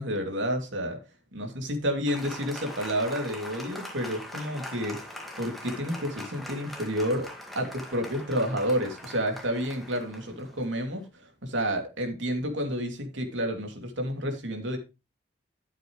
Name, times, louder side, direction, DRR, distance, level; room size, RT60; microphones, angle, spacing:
voice 1, 0.0-1.0 1.3-7.3 7.5-14.8, equal, 80° right, 4 dB, 2.7 m, -30 dB
Applause, 2.1-11.1, left 1 dB, ahead, 1.9 m, -42 dB
13.0 x 7.6 x 3.2 m, 0.28 s
head